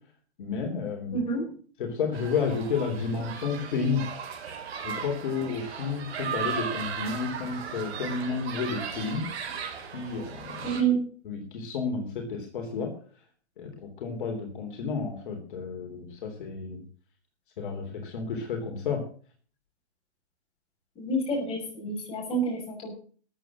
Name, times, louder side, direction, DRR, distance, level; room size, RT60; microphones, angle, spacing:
voice 1, 0.4-1.2 1.8-4.0 4.8-9.2 9.9-10.7 11.2-12.9 13.6-16.8 17.6-19.0, left 5 dB, 50° left, 3 dB, 3.4 m, -31 dB
voice 2, 1.1-1.4 10.6-11.0 21.0-22.9, right 4 dB, 15° left, -1 dB, 6.2 m, -28 dB
sound 1, 2.1-10.8, right 7 dB, 65° right, 4.8 m, -36 dB
14.0 x 8.6 x 7.4 m, 0.43 s
hypercardioid pair, 160°, 34 cm